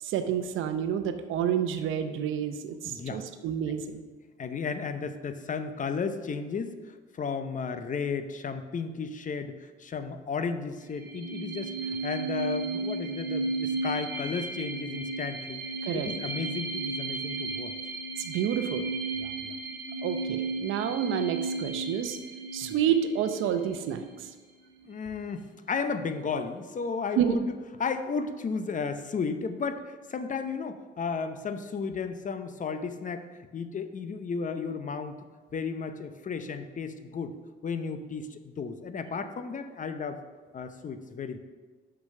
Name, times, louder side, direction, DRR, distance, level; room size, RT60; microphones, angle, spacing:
voice 1, 0.0-4.0 15.8-16.1 18.2-18.9 20.0-22.2 22.5-24.3 27.2-27.4, right 9 dB, 85° right, 8 dB, 0.7 m, -29 dB
voice 2, 2.8-3.2 4.4-15.6 15.9-17.7 19.1-19.6 22.6-22.7 24.8-27.5 27.8-33.3 33.5-35.2 35.5-37.3 37.6-40.2 40.5-41.4, left 5 dB, 40° left, 10 dB, 0.7 m, -34 dB
sound 1, 10.8-24.2, right 3 dB, 50° right, 1.7 m, -34 dB
6.1 x 5.9 x 6.5 m, 1.4 s
cardioid pair, 90°, 20 cm